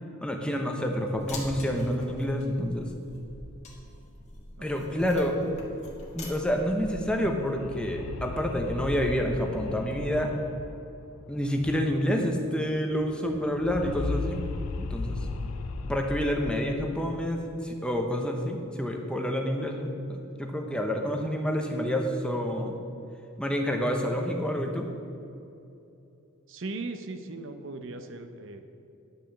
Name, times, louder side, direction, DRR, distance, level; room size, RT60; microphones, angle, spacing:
voice 1, 0.2-2.9 4.6-5.4 6.1-10.3 11.3-14.4 14.8-15.2 15.8-22.7 23.4-24.9, equal, 5° left, 2 dB, 0.8 m, -28 dB
sound 1, 1.1-7.3, left 1 dB, 30° left, 1.6 m, -43 dB
voice 2, 4.6-5.1 26.5-28.6, right 3 dB, 60° right, 7 dB, 0.7 m, -38 dB
sound 2, 7.0-12.3 12.5-12.6 12.9-17.3, left 3 dB, 75° left, 0.5 m, -37 dB
10.5 x 6.0 x 7.1 m, 2.7 s
head